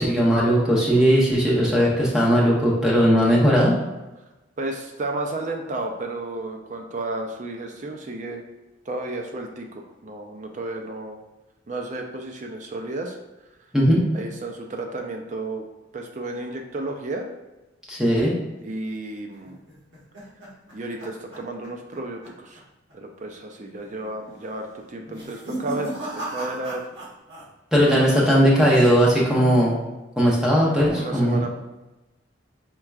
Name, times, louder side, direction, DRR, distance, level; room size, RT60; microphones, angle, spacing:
voice 1, 0.0-3.7 13.7-14.2 17.9-18.3 27.7-29.8 30.2-31.4, equal, 5° right, -5 dB, 0.8 m, -18 dB
voice 2, 1.4-1.9 4.6-8.4 8.9-11.2 11.7-13.2 14.1-15.6 15.9-17.3 18.6-19.6 20.7-22.6 22.9-26.8 27.9-28.4 30.8-31.5, right 2 dB, 40° right, 3 dB, 0.4 m, -32 dB
sound 1, 19.4-22.0 22.2-22.6 22.9-23.0 23.7-24.1 25.0-27.4 27.7-28.3, right 1 dB, 65° right, 1.2 m, -36 dB
4.5 x 3.7 x 2.3 m, 1.1 s
head